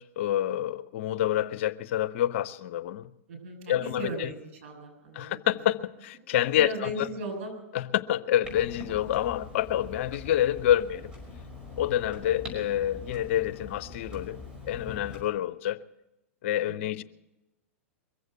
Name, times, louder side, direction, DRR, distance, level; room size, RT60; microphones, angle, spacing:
voice 1, 0.0-3.1 3.7-4.3 5.1-7.1 7.7-11.1 11.8-14.4 14.7-15.8 16.4-17.0, left 12 dB, 60° left, 0.7 m, -27 dB
voice 2, 3.3-5.6 6.6-7.6 16.8-16.9, right 1 dB, 60° right, 6.6 m, -37 dB
Clock, 8.4-15.2, left 3 dB, 10° right, 5.6 m, -43 dB
22.5 x 8.0 x 7.9 m
hypercardioid pair, 110°, 7 cm